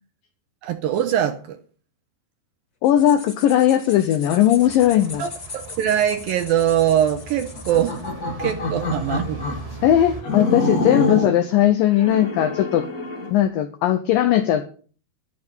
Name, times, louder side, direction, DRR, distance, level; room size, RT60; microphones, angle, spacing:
voice 1, 0.6-1.6 5.2-8.0 8.4-9.4, right 10 dB, 80° right, 2.2 m, -22 dB
voice 2, 2.8-5.3 9.8-12.9 13.3-14.7, left 11 dB, 90° left, 2.0 m, -18 dB
sound 1, 2.8-8.1, left 4 dB, 30° left, 1.8 m, -40 dB
sound 2, 4.6-10.2, right 3 dB, 40° right, 0.5 m, -39 dB
jelenie deer, 7.6-9.7 10.2-11.4 11.9-13.3, left 2 dB, 55° left, 1.0 m, -26 dB
12.0 x 11.0 x 5.5 m
omnidirectional pair, 4.9 m